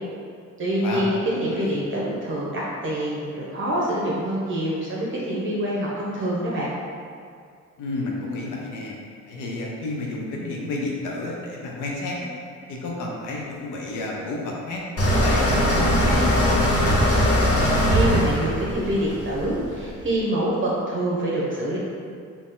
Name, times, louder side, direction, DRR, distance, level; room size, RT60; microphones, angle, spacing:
voice 1, 0.6-6.7 17.9-21.8, right 1 dB, 40° right, -6 dB, 1.0 m, -26 dB
voice 2, 1.4-1.8 7.8-9.0 9.3-12.3 12.7-14.8 15.2-17.1, left 2 dB, 85° left, -2 dB, 0.8 m, -31 dB
sound 1, 15.0-19.9, equal, 50° left, 1.1 m, -20 dB
4.2 x 2.9 x 3.8 m, 2.2 s
cardioid pair, 90°, 30 cm